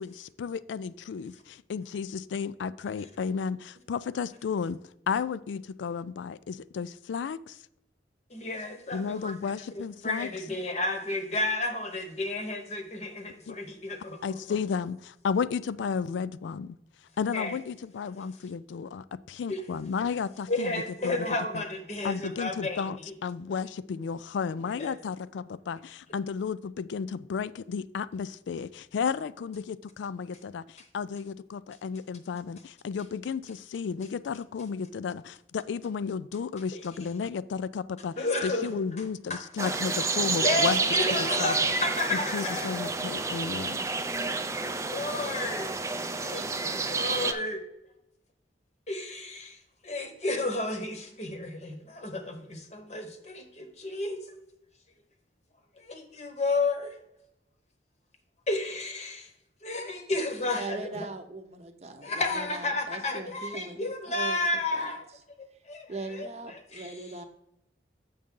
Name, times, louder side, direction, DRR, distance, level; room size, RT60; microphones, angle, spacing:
voice 1, 0.0-4.8 5.1-7.6 8.9-10.3 13.5-13.6 14.2-16.8 17.2-21.2 21.5-21.6 22.0-23.0 23.2-40.8 41.4-41.7 42.1-43.9, left 6 dB, 85° left, 17 dB, 0.3 m, -33 dB
voice 2, 8.3-9.3 9.7-14.4 17.3-17.6 19.5-19.6 20.5-23.1 24.8-25.0 36.7-36.8 38.2-38.8 39.3-39.4 40.4-42.7 44.2-45.7 46.2-47.6 48.9-49.6 49.8-54.2 55.8-57.0 58.5-59.3 59.6-61.1 62.0-65.0 65.4-67.0, left 2 dB, 40° left, 5 dB, 0.9 m, -32 dB
sound 1, 39.6-47.3, right 3 dB, 15° right, 0.3 m, -29 dB
voice 3, 60.6-64.4 64.7-65.0 65.9-67.2, right 3 dB, 35° right, 7 dB, 0.7 m, -40 dB
7.0 x 6.4 x 3.7 m, 0.81 s
head